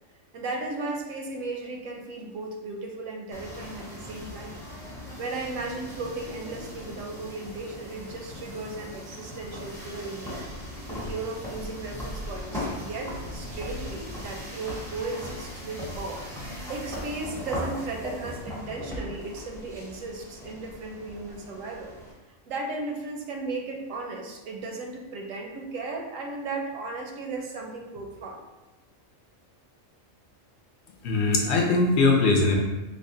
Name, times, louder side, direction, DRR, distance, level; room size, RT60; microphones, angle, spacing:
voice 1, 0.3-4.6 5.2-10.4 10.9-16.2 16.5-22.0 22.5-28.4, right 3 dB, 85° right, 1 dB, 1.0 m, -36 dB
sound 1, 3.3-22.1, left 1 dB, 5° left, 0.6 m, -38 dB
voice 2, 31.0-32.6, left 3 dB, 65° left, 1 dB, 0.8 m, -21 dB
3.4 x 2.1 x 3.8 m, 1.1 s
omnidirectional pair, 1.3 m